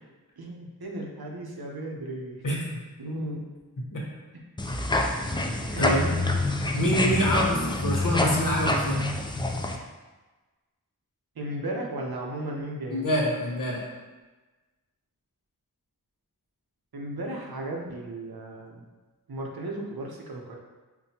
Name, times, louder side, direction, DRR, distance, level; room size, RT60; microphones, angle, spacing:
voice 1, 0.4-2.5 3.0-3.4 4.3-4.4 5.6-6.2 7.2-7.5 11.4-13.1 16.9-18.8 19.3-20.6, right 1 dB, 80° right, -1 dB, 0.7 m, -35 dB
sound 1, 4.6-9.8, left 2 dB, 15° left, 0.3 m, -26 dB
voice 2, 6.6-9.0 12.9-13.8, equal, 60° left, -4 dB, 1.0 m, -26 dB
5.7 x 2.2 x 2.8 m, 1.2 s
wide cardioid pair, 40°, 37 cm